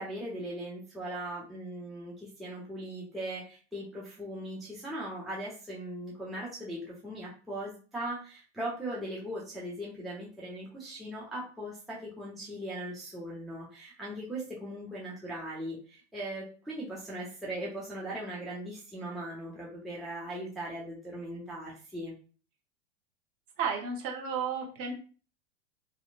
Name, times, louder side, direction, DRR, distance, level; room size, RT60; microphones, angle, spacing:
voice 1, 0.0-22.1, right 1 dB, ahead, -6 dB, 0.6 m, -39 dB
voice 2, 23.6-24.9, right 6 dB, 40° right, -1 dB, 1.0 m, -32 dB
2.8 x 2.0 x 2.4 m, 0.38 s
hypercardioid pair, 100°, 36 cm